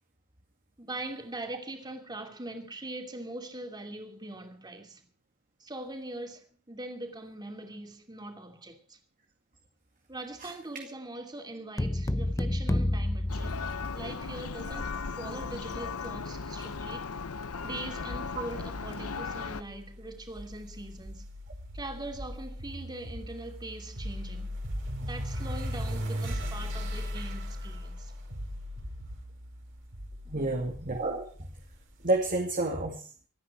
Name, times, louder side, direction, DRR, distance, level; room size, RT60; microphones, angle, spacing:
voice 1, 0.8-5.0 5.6-9.0 10.1-13.7 13.9-17.1 17.6-21.3 21.7-24.6 25.0-28.1 30.2-30.6, right 2 dB, 20° right, 2.7 m, -42 dB
sound 1, 11.8-14.3, left 1 dB, 15° left, 0.7 m, -29 dB
Church bell, 13.3-19.6, left 4 dB, 80° left, 0.9 m, -37 dB
sound 2, 19.0-32.2, equal, 60° right, 4.8 m, -38 dB
voice 2, 30.3-31.5 32.0-33.1, right 2 dB, 40° right, 2.2 m, -30 dB
25.0 x 9.9 x 4.8 m
head